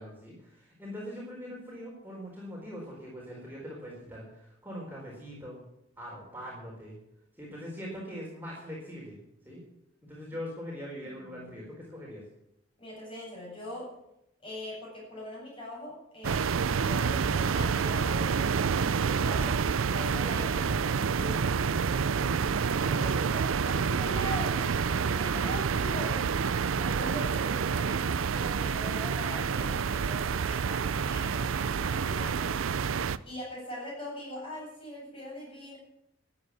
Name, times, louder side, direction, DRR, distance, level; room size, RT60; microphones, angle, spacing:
voice 1, 0.0-5.6 6.0-6.9 7.4-9.2 9.4-9.6 10.0-12.2 20.1-20.3, equal, 10° right, -5 dB, 4.2 m, -42 dB
voice 2, 11.0-11.5 12.8-13.9 14.4-19.6 19.9-22.5 22.8-26.2 26.8-32.6 33.2-35.8, left 1 dB, 30° left, -4 dB, 7.6 m, -41 dB
sound 1, 16.2-33.2, right 6 dB, 90° right, 0.5 m, -28 dB
13.5 x 8.4 x 9.7 m, 0.84 s
head